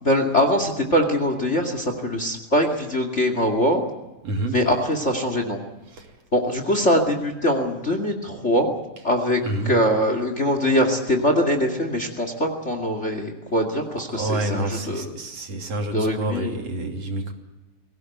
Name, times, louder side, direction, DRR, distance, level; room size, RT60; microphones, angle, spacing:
voice 1, 0.0-3.8 4.5-5.6 6.3-8.7 9.0-9.4 9.7-15.2 15.9-16.5, equal, 25° left, 6 dB, 2.3 m, -22 dB
voice 2, 4.2-4.6 5.9-6.1 9.4-9.8 14.1-17.3, right 2 dB, 60° right, 3 dB, 3.9 m, -28 dB
23.0 x 17.5 x 9.4 m, 1.1 s
omnidirectional pair, 3.4 m